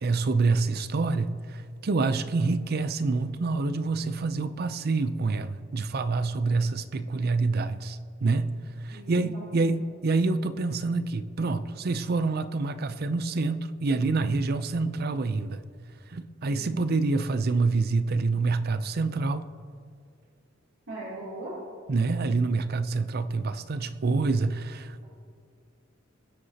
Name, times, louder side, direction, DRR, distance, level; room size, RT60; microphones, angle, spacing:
voice 1, 0.0-8.5 8.8-15.6 16.1-19.5 21.9-25.0, right 3 dB, 50° right, 0.5 m, -27 dB
voice 2, 8.9-9.7 16.4-16.7 20.9-21.5, right 1 dB, 80° right, 3.1 m, -40 dB
21.0 x 8.0 x 2.9 m
head